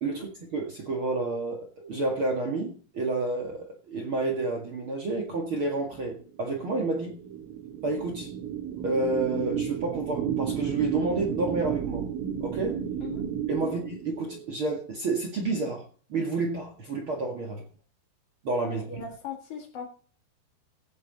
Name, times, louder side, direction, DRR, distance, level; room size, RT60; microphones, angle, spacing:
voice 1, 0.0-7.2 7.8-8.3 8.8-12.1 12.4-12.8 13.5-15.8 16.1-17.6 18.4-19.0, right 3 dB, 65° right, 1.3 m, -30 dB
sound 1, 6.0-14.5, right 9 dB, 90° right, 3.6 m, -33 dB
voice 2, 18.6-19.9, left 7 dB, 50° left, 1.9 m, -40 dB
16.5 x 8.1 x 4.1 m
omnidirectional pair, 5.7 m